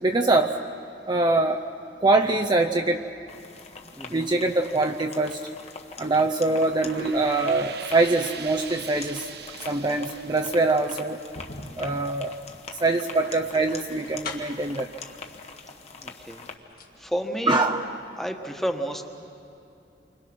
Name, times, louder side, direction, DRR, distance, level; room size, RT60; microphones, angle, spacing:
voice 1, 0.0-0.5 1.1-1.6 2.0-3.1 4.1-5.4 6.0-9.3 9.7-11.2 11.8-12.3 12.8-14.9 17.5-17.8, right 2 dB, 25° right, 3 dB, 0.7 m, -23 dB
sound 1, 3.3-16.6, left 4 dB, 40° left, 1.5 m, -43 dB
voice 2, 4.0-4.3 16.0-16.5 17.0-17.7 18.1-19.0, equal, ahead, 4 dB, 1.4 m, -31 dB
sound 2, 6.4-11.7, right 7 dB, 65° right, 1.1 m, -42 dB
sound 3, 8.4-8.6 9.4-14.7 15.7-15.8 16.2-17.0 17.3-17.4, left 3 dB, 60° left, 2.5 m, -43 dB
29.0 x 25.0 x 6.2 m, 2.7 s
head